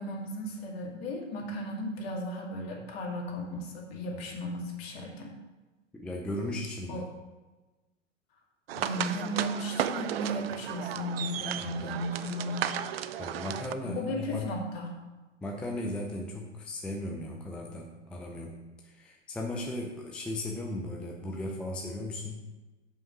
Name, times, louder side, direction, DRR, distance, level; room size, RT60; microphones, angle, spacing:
voice 1, 0.0-5.4 6.9-7.0 8.8-12.7 13.8-15.0, equal, 50° left, 0 dB, 2.1 m, -35 dB
voice 2, 5.9-7.0 11.6-12.1 13.2-14.5 15.4-22.4, left 1 dB, 5° left, 0 dB, 0.5 m, -37 dB
sound 1, 8.7-13.7, right 10 dB, 55° right, 0.5 m, -34 dB
7.1 x 5.4 x 5.3 m, 1.2 s
figure-of-eight pair, 105°, 38 cm